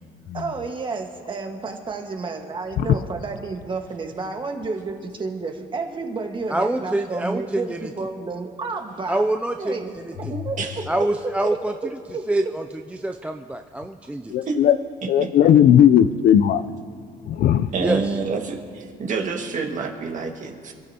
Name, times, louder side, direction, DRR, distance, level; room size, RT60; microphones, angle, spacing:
voice 1, 0.3-9.2 9.6-9.9 10.2-10.8 11.2-11.6 12.1-12.3, right 4 dB, 30° right, 1.6 m, -31 dB
voice 2, 6.5-7.9 9.1-10.3 10.9-12.0 12.3-14.3 17.8-18.2, right 1 dB, 10° right, 0.4 m, -26 dB
voice 3, 10.3-10.8 14.5-14.6 15.0-15.3 17.7-20.7, right 4 dB, 50° right, 1.9 m, -28 dB
voice 4, 14.3-14.8 15.1-16.6 17.3-17.7, left 10 dB, 60° left, 0.5 m, -16 dB
27.5 x 12.5 x 2.9 m
cardioid pair, 110°, 17 cm